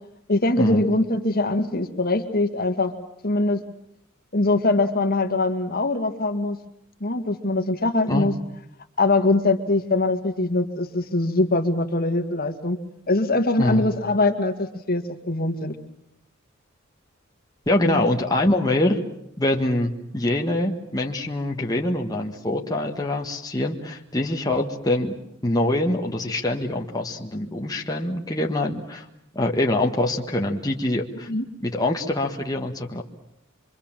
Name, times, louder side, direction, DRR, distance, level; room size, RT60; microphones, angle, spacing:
voice 1, 0.3-2.9 3.2-3.6 4.3-6.6 7.0-8.3 9.0-12.8 13.1-15.8 17.8-18.0 31.3-31.4, left 2 dB, 50° left, 6 dB, 2.0 m, -22 dB
voice 2, 17.7-19.0 19.4-25.1 25.4-29.0 29.3-31.3 31.6-33.0, left 1 dB, 20° left, 0 dB, 1.7 m, -24 dB
25.5 x 24.5 x 7.5 m, 0.77 s
head